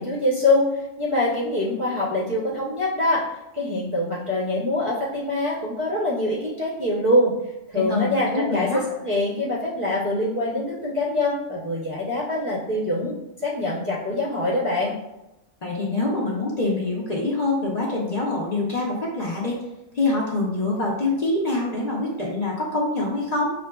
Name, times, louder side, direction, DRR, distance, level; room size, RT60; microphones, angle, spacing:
voice 1, 0.0-3.2 3.5-7.3 7.7-14.9, left 1 dB, 35° right, -6 dB, 0.5 m, -24 dB
voice 2, 7.7-8.8 15.6-19.6 19.9-23.5, left 2 dB, 45° left, -4 dB, 0.6 m, -25 dB
5.6 x 2.5 x 2.2 m, 0.93 s
omnidirectional pair, 1.2 m